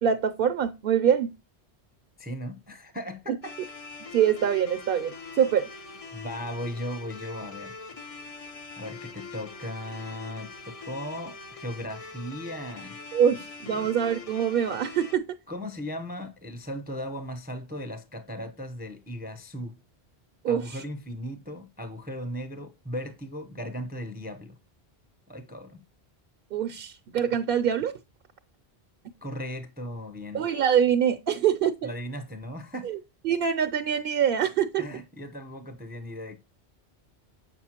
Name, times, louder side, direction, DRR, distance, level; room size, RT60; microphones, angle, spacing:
voice 1, 0.0-1.3 4.1-5.7 13.1-15.2 20.4-20.8 26.5-27.9 30.3-31.9 32.8-33.0 33.2-34.8, right 8 dB, 65° right, 0.7 m, -24 dB
voice 2, 2.2-3.5 6.1-7.8 8.8-13.0 13.7-13.9 15.5-19.7 20.5-24.5 25.3-25.8 29.2-30.5 31.8-32.9 34.8-36.4, equal, 10° right, 0.6 m, -37 dB
sound 1, 3.4-15.2, left 4 dB, 40° left, 0.7 m, -43 dB
7.8 x 6.1 x 2.8 m
omnidirectional pair, 1.1 m